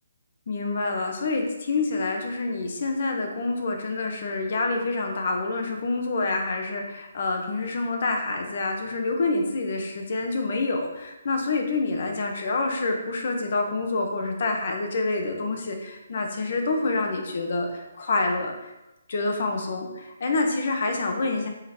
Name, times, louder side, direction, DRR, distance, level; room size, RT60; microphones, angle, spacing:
voice 1, 0.5-18.7 19.1-21.5, left 3 dB, 40° left, 3 dB, 1.2 m, -27 dB
7.6 x 7.4 x 3.1 m, 0.96 s
hypercardioid pair, 175°, 0 cm